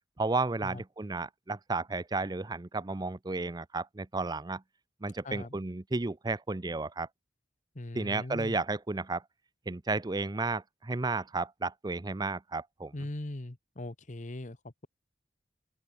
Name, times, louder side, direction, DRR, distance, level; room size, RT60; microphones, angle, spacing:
voice 1, 0.2-4.6 5.0-7.1 7.9-9.2 9.7-12.9, right 3 dB, 20° right, 0.6 m, -33 dB
voice 2, 5.2-5.6 7.7-8.6 12.9-14.9, left 1 dB, 45° left, 1.2 m, -40 dB
open air
head